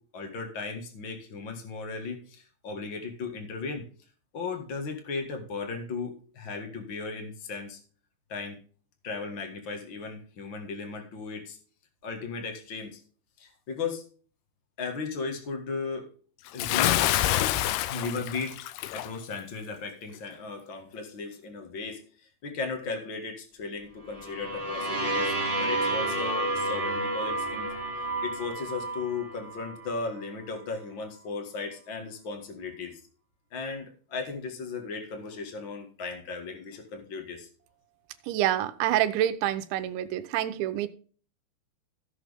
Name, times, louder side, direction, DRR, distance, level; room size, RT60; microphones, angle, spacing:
voice 1, 0.0-3.9 4.3-7.8 8.3-8.6 9.0-11.6 12.0-13.0 13.4-14.0 14.8-16.1 16.5-17.0 17.8-18.6 18.9-27.7 28.2-33.0 33.5-37.5, left 4 dB, 70° left, 4 dB, 1.1 m, -36 dB
Bathtub (filling or washing) / Splash splatter, 16.6-19.1, left 14 dB, 85° left, 2.2 m, -26 dB
sound 1, 24.1-29.9, right 2 dB, 40° right, 0.5 m, -30 dB
voice 2, 38.3-40.9, right 12 dB, 85° right, 11 dB, 3.1 m, -27 dB
16.5 x 6.2 x 3.5 m, 0.41 s
omnidirectional pair, 5.3 m